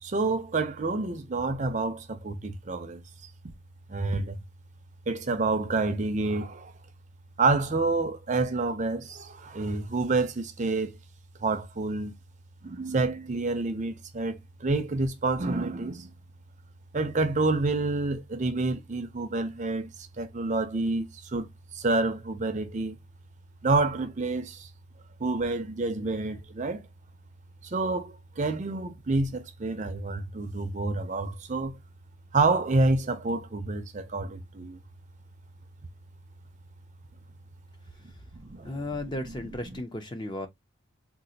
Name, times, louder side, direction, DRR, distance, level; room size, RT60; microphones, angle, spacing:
voice 1, 0.0-3.3 3.9-4.4 5.1-6.7 7.4-11.0 11.4-12.1 12.6-16.1 16.9-23.0 23.6-24.7 25.2-26.8 27.6-31.8 32.3-34.8 38.4-38.8, right 3 dB, 35° right, 0.5 m, -28 dB
voice 2, 38.6-40.5, left 1 dB, 20° left, 0.4 m, -34 dB
3.7 x 2.4 x 2.7 m
head